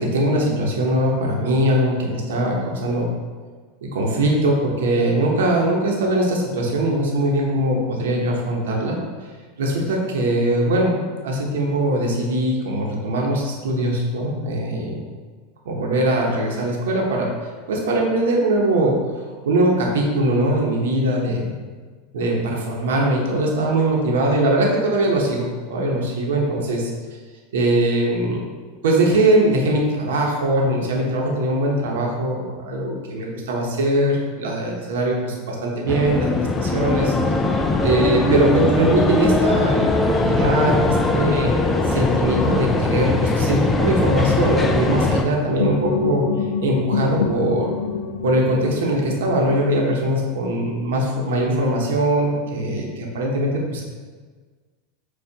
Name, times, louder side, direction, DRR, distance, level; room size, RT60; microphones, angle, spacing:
voice 1, 0.0-3.1 3.8-9.0 9.6-11.0 11.2-15.0 15.6-17.3 17.7-19.0 19.4-21.5 22.1-26.9 27.5-28.5 28.8-37.1 37.8-41.5 41.8-46.2 46.6-47.7 48.2-53.8, right 1 dB, 85° right, -1 dB, 0.9 m, -21 dB
sound 1, 35.9-45.2, left 2 dB, 15° left, 0.4 m, -20 dB
sound 2, 45.6-50.4, left 5 dB, 80° left, 0.4 m, -26 dB
6.6 x 2.4 x 2.8 m, 1.5 s
supercardioid pair, 125°, 0 cm